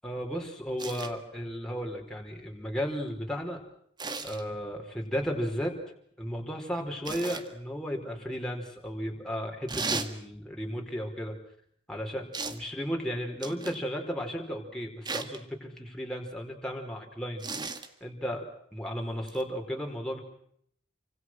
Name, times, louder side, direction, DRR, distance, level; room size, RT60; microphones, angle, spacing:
voice 1, 0.0-3.6 4.2-5.8 6.2-11.3 11.9-17.4 18.0-18.5 18.7-20.2, equal, 5° left, 0 dB, 4.8 m, -34 dB
sound 1, 0.8-1.1 4.0-4.4 7.0-7.5 9.7-10.1 12.3-12.6 13.4-13.8 15.1-15.4 17.4-17.9 19.3-19.4, right 4 dB, 20° right, 1.8 m, -35 dB
29.0 x 26.0 x 6.3 m, 0.68 s
head